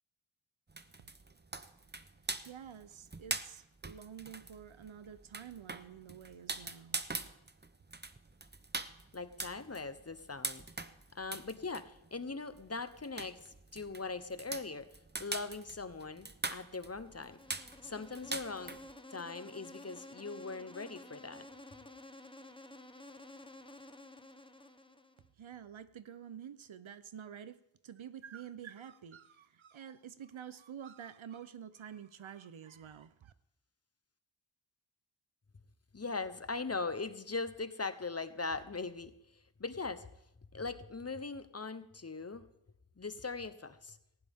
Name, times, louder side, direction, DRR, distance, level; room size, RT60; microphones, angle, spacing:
sound 1, 0.7-18.9, right 3 dB, 20° right, 0.8 m, -43 dB
voice 1, 1.9-7.0 25.4-33.3, right 8 dB, 80° right, 14 dB, 0.8 m, -49 dB
voice 2, 9.1-10.6 11.1-14.9 15.2-17.4 17.8-18.8 19.1-21.5 35.9-39.1 39.6-40.1 40.5-42.5 43.0-44.0, left 4 dB, 30° left, 12 dB, 0.9 m, -40 dB
Insect, 17.1-25.3, left 2 dB, 10° left, 1.0 m, -52 dB
18.5 x 15.5 x 3.6 m, 0.81 s
wide cardioid pair, 75°, 47 cm